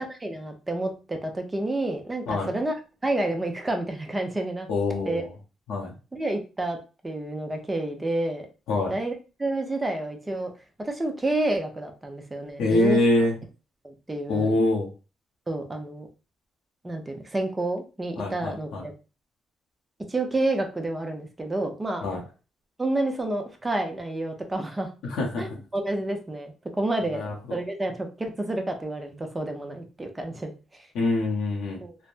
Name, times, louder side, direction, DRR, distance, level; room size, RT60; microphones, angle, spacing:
voice 1, 0.0-2.7 3.0-4.7 5.0-5.2 6.1-6.8 7.0-8.5 8.9-9.1 9.4-10.5 10.8-13.0 13.8-14.5 15.5-16.1 16.8-18.9 20.1-22.0 22.8-24.9 25.4-27.2 27.5-30.9 31.8-32.0, right 2 dB, 15° right, 4 dB, 0.7 m, -29 dB
voice 2, 4.7-5.3 5.7-5.9 8.7-8.9 12.6-13.4 14.3-14.9 18.2-18.8 22.0-22.2 25.0-25.6 27.1-27.3 30.9-31.8, left 2 dB, 80° left, -1 dB, 0.8 m, -24 dB
3.2 x 2.1 x 2.5 m, 0.33 s
cardioid pair, 90°, 0 cm